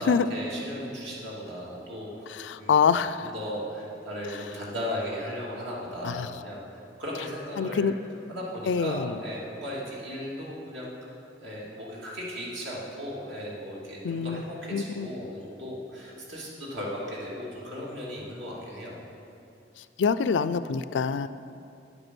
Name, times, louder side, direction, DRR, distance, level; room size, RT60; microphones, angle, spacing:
voice 1, 0.0-2.1 2.5-2.8 3.2-7.9 8.3-10.9 11.4-19.0, equal, 80° right, -5 dB, 2.7 m, -36 dB
voice 2, 2.3-3.3 6.0-6.3 7.6-7.9 8.7-9.2 14.0-14.4 14.7-15.1 20.0-21.3, left 6 dB, 80° left, 14 dB, 0.4 m, -25 dB
9.9 x 7.9 x 6.1 m, 2.6 s
head